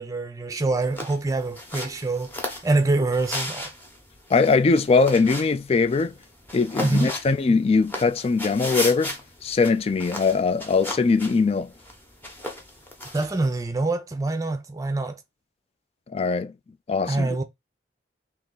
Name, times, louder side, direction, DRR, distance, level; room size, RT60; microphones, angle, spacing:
voice 1, 0.0-3.7 6.8-7.1 13.1-15.2 17.1-17.4, right 2 dB, 20° right, 0.5 m, -25 dB
sound 1, 0.8-13.6, left 1 dB, 10° left, 0.9 m, -36 dB
voice 2, 4.3-6.1 6.5-9.1 9.4-11.7 16.1-16.5 16.9-17.3, left 4 dB, 35° left, 0.3 m, -21 dB
3.5 x 2.9 x 3.9 m
head